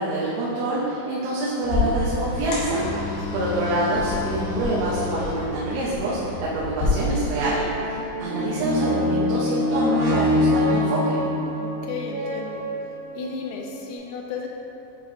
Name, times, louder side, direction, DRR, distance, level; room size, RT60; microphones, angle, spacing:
voice 1, 0.0-11.2, right 1 dB, 90° right, -7 dB, 3.2 m, -26 dB
sound 1, 1.6-6.9, left 2 dB, 70° left, 2.9 m, -29 dB
voice 2, 3.2-3.6 11.6-12.7 13.1-14.5, left 5 dB, 85° left, 1 dB, 3.0 m, -34 dB
sound 2, 7.3-13.2 13.8-13.9, left 1 dB, 75° right, 3.6 m, -24 dB
10.0 x 4.2 x 2.8 m, 2.8 s
omnidirectional pair, 5.3 m